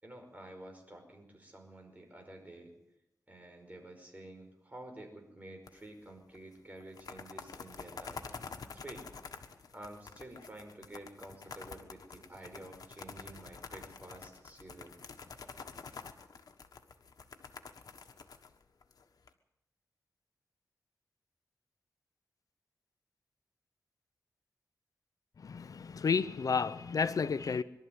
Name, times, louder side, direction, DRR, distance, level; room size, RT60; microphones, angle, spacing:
voice 1, 0.0-2.7 3.3-8.3 8.7-9.1 9.7-15.0, right 1 dB, 25° right, 5.3 m, -50 dB
sound 1, 5.7-6.1 6.3-6.4 6.8-19.3, left 5 dB, 90° left, 1.4 m, -48 dB
voice 2, 25.4-27.6, left 5 dB, 70° left, 0.7 m, -31 dB
23.0 x 12.5 x 9.3 m
wide cardioid pair, 95°, 6 cm